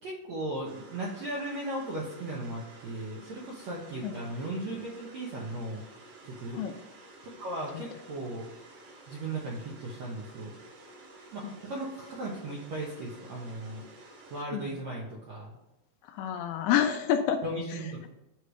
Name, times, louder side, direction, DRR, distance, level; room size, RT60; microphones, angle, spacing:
voice 1, 0.0-5.8 6.2-6.6 7.2-8.4 9.1-10.5 11.3-13.8 14.3-15.6 17.4-18.1, right 1 dB, 75° right, -3 dB, 1.6 m, -37 dB
sound 1, 0.6-14.4, right 2 dB, 60° right, 1.6 m, -52 dB
voice 2, 16.0-17.4 17.7-18.1, left 9 dB, 80° left, 7 dB, 2.3 m, -29 dB
8.2 x 3.3 x 6.4 m, 0.95 s
omnidirectional pair, 4.7 m